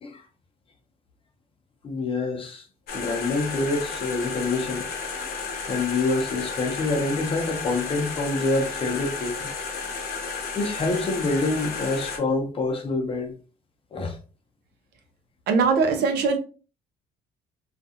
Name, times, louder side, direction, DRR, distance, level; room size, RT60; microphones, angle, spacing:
voice 1, 1.8-2.7 2.9-4.9 5.7-9.5 10.5-13.3 13.9-14.2, left 3 dB, 35° left, 0.7 m, -26 dB
sound 1, 2.9-12.2, left 5 dB, 65° left, 0.8 m, -33 dB
voice 2, 15.5-16.4, right 5 dB, 75° right, 0.7 m, -21 dB
2.4 x 2.3 x 2.7 m
cardioid pair, 110°, 17 cm